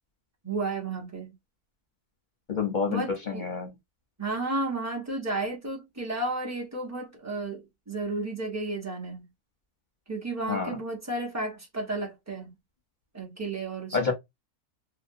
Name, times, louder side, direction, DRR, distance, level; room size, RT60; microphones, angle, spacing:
voice 1, 0.4-1.3 2.9-3.5 4.2-9.2 10.1-12.5 13.1-14.1, right 2 dB, 15° right, 0.5 m, -32 dB
voice 2, 2.5-3.7 10.5-10.7 13.9-14.1, left 5 dB, 45° left, 0.6 m, -28 dB
2.8 x 2.1 x 2.6 m
omnidirectional pair, 1.6 m